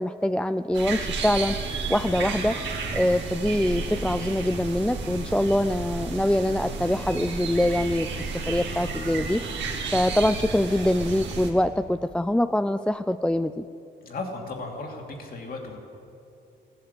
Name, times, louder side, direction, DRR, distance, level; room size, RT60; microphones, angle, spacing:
voice 1, 0.0-1.6 1.9-2.6 2.9-8.1 8.5-9.4 9.9-13.7, left 1 dB, 5° left, 12 dB, 0.3 m, -24 dB
sound 1, 0.7-11.5, right 4 dB, 65° right, 2.4 m, -32 dB
voice 2, 14.0-15.8, left 3 dB, 50° left, 1 dB, 2.8 m, -35 dB
15.0 x 11.5 x 8.3 m, 2.6 s
cardioid pair, 90°, 20 cm